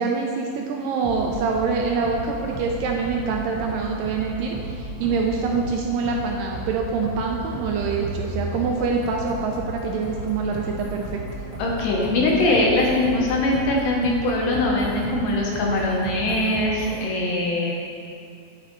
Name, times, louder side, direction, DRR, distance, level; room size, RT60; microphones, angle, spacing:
voice 1, 0.0-11.1, right 4 dB, 80° right, 1 dB, 2.1 m, -25 dB
sound 1, 1.0-17.0, right 1 dB, 50° right, 1.6 m, -34 dB
voice 2, 11.6-17.7, left 2 dB, 70° left, -2 dB, 2.4 m, -22 dB
9.0 x 8.7 x 3.1 m, 2.4 s
omnidirectional pair, 4.4 m